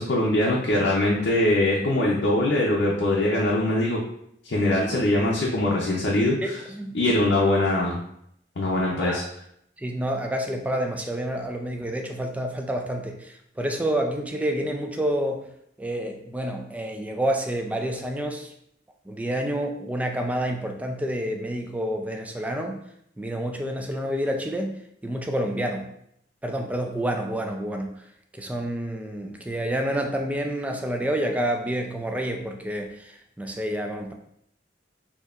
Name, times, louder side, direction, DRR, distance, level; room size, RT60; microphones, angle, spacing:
voice 1, 0.0-4.0 4.4-6.6 6.9-8.0 8.6-9.2, left 1 dB, 65° left, -4 dB, 0.6 m, -22 dB
voice 2, 6.4-7.0 9.0-9.3 9.8-15.5 15.8-18.5 19.1-22.8 23.2-25.9 26.4-27.9 28.3-34.1, right 1 dB, 10° right, 3 dB, 0.4 m, -28 dB
4.4 x 2.8 x 2.4 m, 0.72 s
head